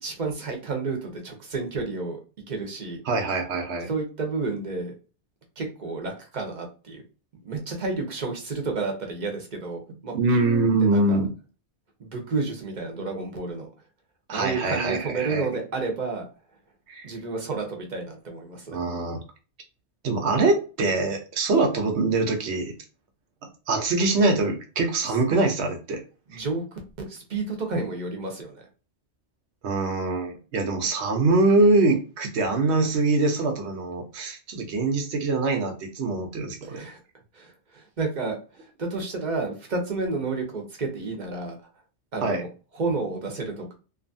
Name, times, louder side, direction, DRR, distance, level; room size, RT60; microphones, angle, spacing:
voice 1, 0.0-2.2 2.5-3.0 3.9-4.9 5.6-7.0 7.4-11.2 12.0-13.7 14.3-16.2 17.0-18.8 26.3-26.8 27.1-28.6 36.6-37.0 37.3-41.6 42.1-42.5 42.7-43.7, right 3 dB, 50° right, 2 dB, 0.8 m, -31 dB
voice 2, 3.1-3.9 10.1-11.3 14.3-15.5 16.9-17.1 18.7-19.2 20.0-22.7 23.7-26.0 26.3-26.4 29.6-36.8 42.2-42.4, right 3 dB, 80° right, 4 dB, 1.0 m, -23 dB
2.6 x 2.4 x 2.6 m, 0.34 s
omnidirectional pair, 1.1 m